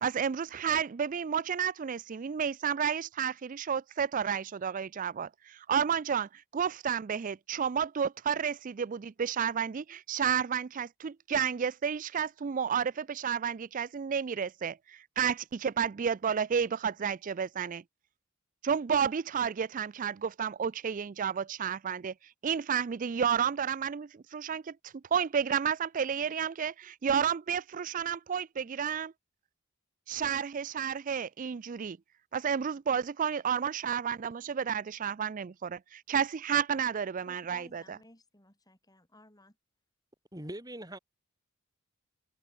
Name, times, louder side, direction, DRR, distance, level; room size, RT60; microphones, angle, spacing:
voice 1, 0.0-17.8 18.6-22.1 22.4-29.1 30.1-32.0 32.3-37.8, right 7 dB, 35° right, 0.4 m, -31 dB
voice 2, 37.3-39.6, left 2 dB, 15° left, 7.8 m, -57 dB
voice 3, 40.3-41.0, right 1 dB, 15° right, 5.8 m, -41 dB
head